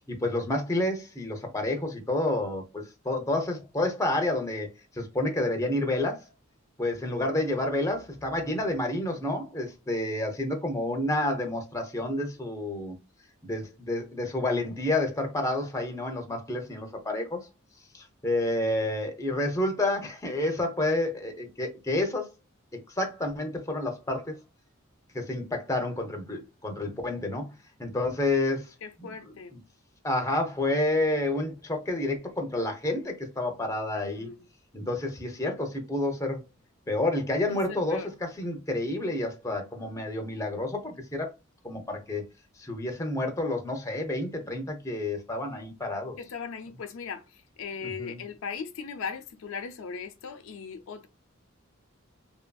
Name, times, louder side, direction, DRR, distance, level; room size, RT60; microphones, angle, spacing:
voice 1, 0.1-4.7 4.9-6.2 6.8-13.0 13.4-17.5 17.9-22.3 23.0-24.4 25.1-27.5 27.8-28.7 29.0-29.1 30.0-34.3 34.7-36.4 36.9-38.0 38.4-41.3 41.6-42.2 42.6-46.2 47.8-48.2, left 2 dB, 15° left, 0.5 m, -29 dB
voice 2, 28.8-29.6 34.0-34.5 37.5-38.1 46.2-51.1, left 6 dB, 75° left, 0.4 m, -38 dB
2.7 x 2.5 x 2.2 m
head